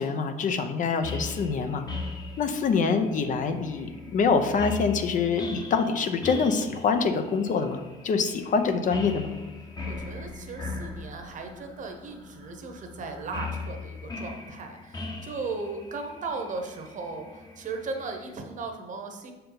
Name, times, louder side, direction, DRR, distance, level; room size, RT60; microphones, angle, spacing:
voice 1, 0.0-1.8 2.4-9.3, left 5 dB, 50° left, 8 dB, 0.6 m, -25 dB
sound 1, 1.0-18.3, left 3 dB, 25° left, 1.0 m, -39 dB
voice 2, 9.9-19.3, right 3 dB, 50° right, 4 dB, 1.0 m, -37 dB
6.4 x 4.5 x 3.9 m, 1.1 s
cardioid pair, 110°, 17 cm